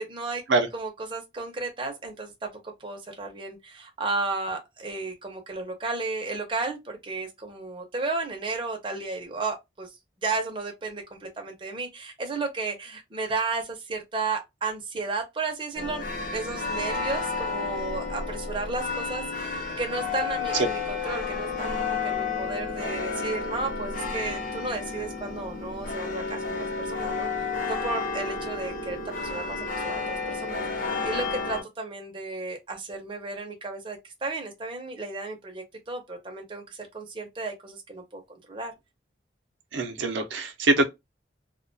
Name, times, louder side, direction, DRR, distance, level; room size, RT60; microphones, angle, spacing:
voice 1, 0.0-0.4 0.7-9.9 10.2-38.2 38.5-38.7, right 3 dB, 25° right, 0.5 m, -33 dB
sound 1, 15.7-31.6, left 4 dB, 45° left, 0.6 m, -31 dB
voice 2, 39.7-40.9, right 3 dB, 80° right, 0.5 m, -23 dB
2.2 x 2.2 x 2.6 m
head